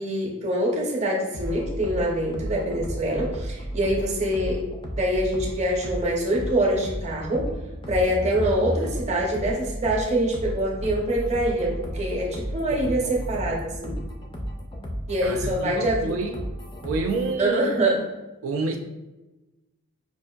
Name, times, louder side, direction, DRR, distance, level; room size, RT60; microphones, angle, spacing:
voice 1, 0.0-4.6 5.0-7.5 7.9-14.0 15.1-16.2 17.4-18.0, right 1 dB, 30° right, -2 dB, 0.6 m, -25 dB
sound 1, 1.3-17.3, equal, 25° left, 0.4 m, -33 dB
voice 2, 12.7-13.1 15.2-16.4 16.8-17.6 18.4-18.8, right 3 dB, 75° right, 4 dB, 0.3 m, -28 dB
5.2 x 2.5 x 2.2 m, 1.1 s
head